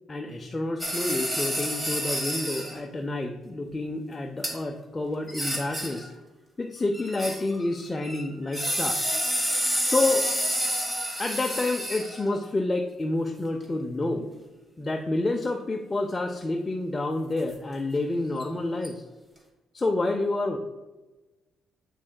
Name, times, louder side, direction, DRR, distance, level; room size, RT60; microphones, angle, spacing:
voice 1, 0.1-6.1 6.6-9.0 9.8-10.3 11.2-14.3 14.8-19.0 19.7-20.6, left 2 dB, 20° left, 3 dB, 0.5 m, -29 dB
sound 1, 0.8-2.8 4.4-4.5 5.3-6.1 6.9-7.7 8.0-12.3 18.4-18.5 18.8-18.9, equal, 10° right, 1.4 m, -29 dB
7.2 x 6.2 x 2.2 m, 1.2 s
cardioid pair, 90°, 0 cm